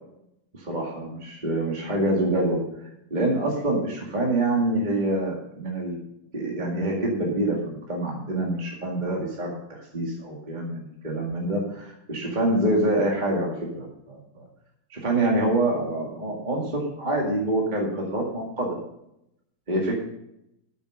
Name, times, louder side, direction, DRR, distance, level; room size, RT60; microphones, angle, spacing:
voice 1, 0.5-6.0 6.3-14.4 14.9-18.7 19.7-20.0, right 1 dB, 25° right, -2 dB, 2.2 m, -26 dB
12.0 x 7.2 x 6.3 m, 0.81 s
omnidirectional pair, 2.0 m